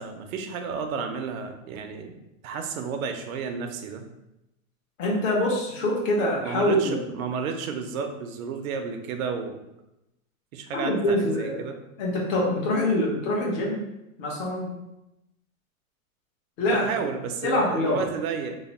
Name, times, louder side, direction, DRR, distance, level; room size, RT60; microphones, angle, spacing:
voice 1, 0.0-4.0 6.4-9.6 10.5-11.8 16.7-18.6, right 5 dB, 70° right, 6 dB, 0.7 m, -32 dB
voice 2, 5.0-7.0 10.7-11.6 12.0-13.8 14.2-14.7 16.6-16.9 17.4-18.0, left 1 dB, 60° left, -3 dB, 1.3 m, -24 dB
3.0 x 2.1 x 4.1 m, 0.90 s
supercardioid pair, 150°, 42 cm